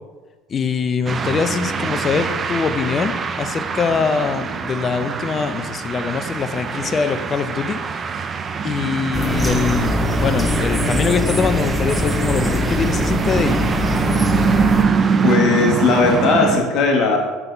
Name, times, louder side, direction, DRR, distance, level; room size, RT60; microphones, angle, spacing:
voice 1, 0.5-7.8 8.6-13.6, left 5 dB, 30° left, 9 dB, 0.5 m, -23 dB
sound 1, 1.1-16.6, right 5 dB, 30° right, 0.5 m, -24 dB
sound 2, 9.1-14.9, left 1 dB, 5° left, 0.8 m, -22 dB
voice 2, 15.2-17.2, left 4 dB, 55° left, 1 dB, 1.5 m, -17 dB
5.9 x 5.4 x 4.6 m, 1.3 s
supercardioid pair, 115°, 0 cm